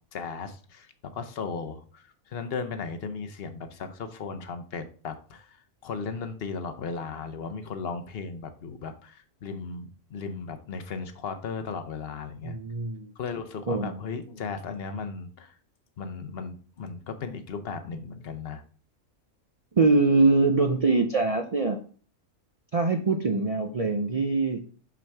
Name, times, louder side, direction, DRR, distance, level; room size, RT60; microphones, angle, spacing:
voice 1, 0.1-5.6 5.8-12.6 13.2-15.5 16.0-18.6, left 5 dB, 50° left, 8 dB, 0.9 m, -36 dB
voice 2, 12.4-13.1 13.7-14.0 19.8-21.8 22.7-24.6, right 3 dB, 60° right, 5 dB, 0.3 m, -23 dB
6.0 x 6.0 x 3.4 m, 0.42 s
omnidirectional pair, 1.5 m